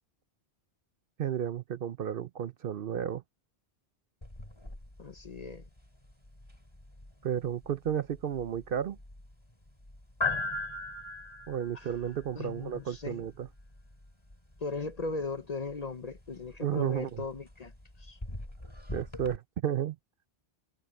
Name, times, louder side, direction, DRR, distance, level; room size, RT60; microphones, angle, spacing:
voice 1, 1.2-3.2 7.2-9.0 11.5-13.5 16.6-17.1 18.9-20.0, right 9 dB, 60° right, 0.7 m, -32 dB
sound 1, 4.2-19.4, left 3 dB, 25° left, 3.8 m, -41 dB
voice 2, 5.0-5.7 11.7-11.9 12.3-13.3 14.6-17.7 18.0-18.2, left 4 dB, 40° left, 0.7 m, -38 dB
omnidirectional pair, 1.2 m